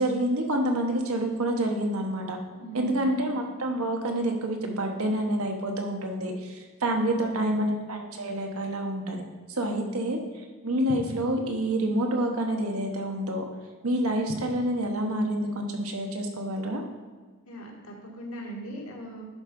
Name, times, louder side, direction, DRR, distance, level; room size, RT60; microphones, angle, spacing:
voice 1, 0.0-2.4 2.7-9.2 9.5-13.4 13.8-16.8, right 1 dB, 85° right, 3 dB, 1.2 m, -28 dB
voice 2, 2.5-3.2 7.1-7.5 9.6-10.1 17.4-19.2, right 2 dB, 75° left, 0 dB, 1.6 m, -40 dB
10.5 x 3.9 x 5.2 m, 1.4 s
head